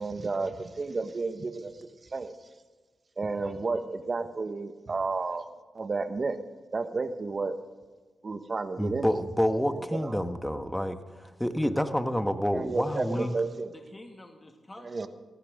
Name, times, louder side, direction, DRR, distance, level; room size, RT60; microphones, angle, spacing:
voice 1, 0.0-2.3 3.2-5.4 5.7-6.4 6.7-7.6 8.2-9.1 9.6-10.2 12.5-13.7 14.8-15.1, right 3 dB, 45° right, 10 dB, 1.3 m, -32 dB
voice 2, 8.8-13.3, equal, 5° left, 8 dB, 1.5 m, -28 dB
voice 3, 12.9-15.0, left 1 dB, 25° left, 3 dB, 2.3 m, -48 dB
20.5 x 15.0 x 3.8 m, 1.4 s
supercardioid pair, 40°, 0 cm